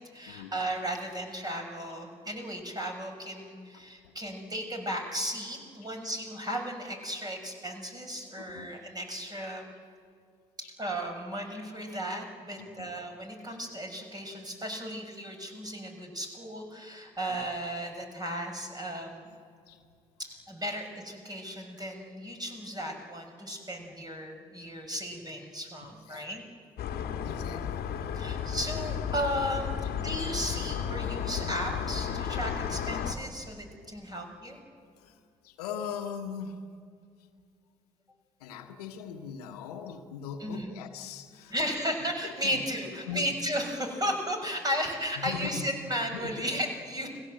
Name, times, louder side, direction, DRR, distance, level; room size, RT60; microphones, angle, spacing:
voice 1, 0.1-9.6 10.6-19.3 20.2-26.4 28.2-34.6 40.4-40.7 41.5-47.1, equal, 20° right, 3 dB, 6.2 m, -35 dB
voice 2, 8.4-8.7 10.6-10.7 12.6-12.9 17.3-17.4 19.7-19.8 23.5-23.9 25.8-26.3 27.2-28.4 35.0-36.6 38.4-41.8 42.2-42.6 43.0-43.3 45.2-45.6 46.1-46.5, left 7 dB, 80° left, 6 dB, 1.5 m, -41 dB
sound 1, 26.8-33.1, left 8 dB, 55° left, 1.8 m, -33 dB
30.0 x 19.5 x 7.8 m, 2.3 s
figure-of-eight pair, 50°, 20 cm